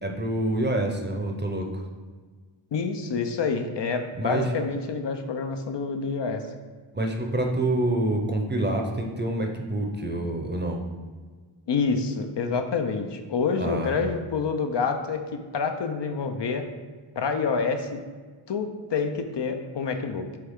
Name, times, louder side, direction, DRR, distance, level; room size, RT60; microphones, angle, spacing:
voice 1, 0.0-1.8 4.2-4.5 6.9-10.8 13.6-13.9, right 1 dB, 20° right, 2 dB, 0.7 m, -27 dB
voice 2, 2.7-6.4 11.7-15.2 15.5-16.6 17.2-18.0 18.5-20.4, left 5 dB, 60° left, 6 dB, 0.6 m, -27 dB
7.7 x 3.4 x 3.6 m, 1.4 s
wide cardioid pair, 95°, 49 cm